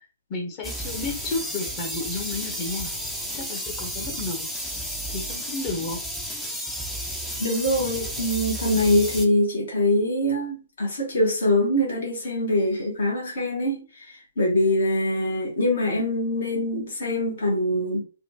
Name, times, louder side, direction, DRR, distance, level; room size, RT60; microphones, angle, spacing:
voice 1, 0.3-3.0 3.3-4.5 5.1-6.0, left 3 dB, 30° left, 1.1 m, -32 dB
sound 1, 0.6-9.3, equal, ahead, 0.6 m, -32 dB
voice 2, 7.4-18.0, left 1 dB, 60° left, 1.3 m, -24 dB
4.1 x 2.3 x 2.8 m
figure-of-eight pair, 120°, 0 cm